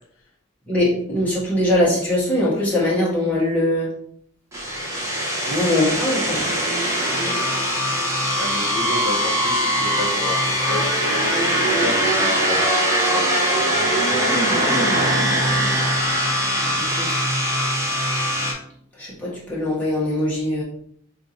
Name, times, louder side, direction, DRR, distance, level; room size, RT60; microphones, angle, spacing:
voice 1, 0.7-3.9 5.4-6.4 16.5-17.2 19.0-20.6, left 1 dB, 5° left, -8 dB, 1.4 m, -22 dB
sound 1, 4.5-18.5, equal, 15° right, 0.7 m, -21 dB
voice 2, 8.4-10.9 11.4-12.6 13.1-13.6, left 2 dB, 80° left, 2 dB, 0.7 m, -31 dB
3.4 x 2.6 x 4.2 m, 0.67 s
head